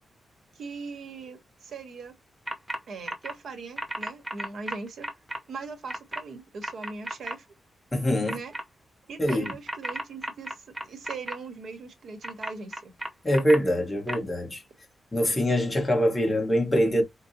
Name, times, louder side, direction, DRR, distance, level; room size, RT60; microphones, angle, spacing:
voice 1, 0.5-2.1 2.9-5.1 5.5-7.5 8.2-8.5 9.1-12.9, right 4 dB, 60° right, 1.1 m, -40 dB
sound 1, 2.5-2.8 3.1-3.3 3.8-5.4 5.9-6.2 6.6-7.3 8.3-8.6 9.3-11.3 12.2-13.6 14.1-14.2, right 1 dB, 10° right, 0.8 m, -33 dB
voice 2, 7.9-8.4 9.2-9.5 13.2-14.6 15.1-17.0, equal, 10° left, 1.3 m, -24 dB
4.7 x 2.2 x 2.7 m
wide cardioid pair, 160°, 0 cm